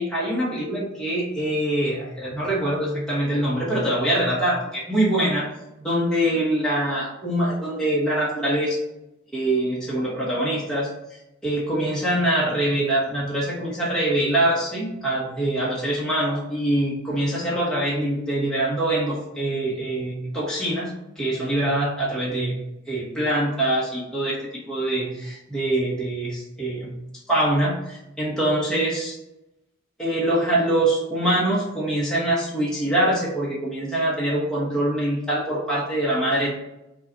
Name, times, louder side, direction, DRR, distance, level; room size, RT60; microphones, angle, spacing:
voice 1, 0.0-5.4 5.8-8.8 9.3-10.9 11.4-22.5 22.9-24.4 24.7-26.9 27.3-29.2 30.0-36.5, right 1 dB, 5° left, -7 dB, 1.1 m, -24 dB
5.5 x 2.4 x 3.9 m, 0.90 s
head